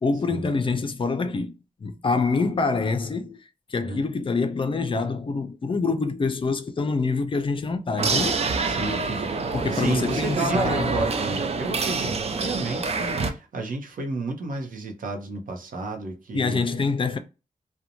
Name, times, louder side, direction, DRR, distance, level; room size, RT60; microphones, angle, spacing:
voice 1, 0.0-1.5 1.8-8.4 9.5-11.0 16.3-17.2, left 4 dB, 40° left, 0.4 m, -26 dB
sound 1, 8.0-13.3, right 4 dB, 50° right, 0.4 m, -26 dB
voice 2, 8.6-16.6, right 2 dB, 85° right, 0.7 m, -32 dB
2.5 x 2.1 x 2.8 m
wide cardioid pair, 105°, 14 cm